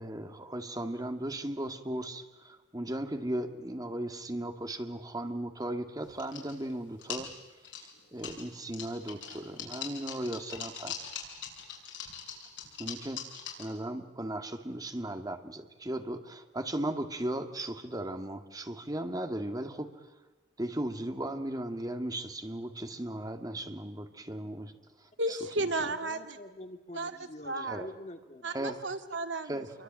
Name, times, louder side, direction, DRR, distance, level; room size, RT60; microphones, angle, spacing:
voice 1, 0.0-7.3 8.1-11.0 12.8-13.2 13.6-20.0 20.6-24.7 25.3-25.4 25.8-25.9 27.6-27.9 28.5-28.8 29.4-29.7, right 1 dB, 20° right, 7 dB, 2.1 m, -36 dB
sound 1, 6.0-6.7 7.0-8.4 8.7-13.6, left 8 dB, 75° left, 6.7 m, -41 dB
voice 2, 25.2-26.4 26.9-27.2 27.4-27.9 28.4-29.5, right 2 dB, 85° right, 8 dB, 2.1 m, -33 dB
voice 3, 25.8-28.6, left 1 dB, 40° left, 6 dB, 2.4 m, -46 dB
28.0 x 23.5 x 9.0 m, 1.2 s
head